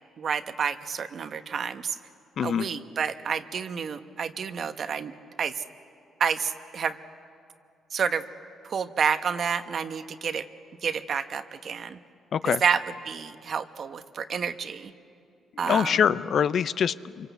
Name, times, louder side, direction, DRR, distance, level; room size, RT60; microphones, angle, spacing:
voice 1, 0.2-2.0 2.4-5.1 5.4-5.6 6.2-7.0 7.9-8.2 8.6-10.4 10.8-12.0 12.4-14.9 15.6-16.0, right 6 dB, 55° right, 10 dB, 1.0 m, -29 dB
voice 2, 2.4-2.7 12.3-12.6 15.6-17.3, left 8 dB, 60° left, 15 dB, 0.5 m, -24 dB
26.5 x 24.5 x 8.1 m, 2.5 s
cardioid pair, 90°, 0 cm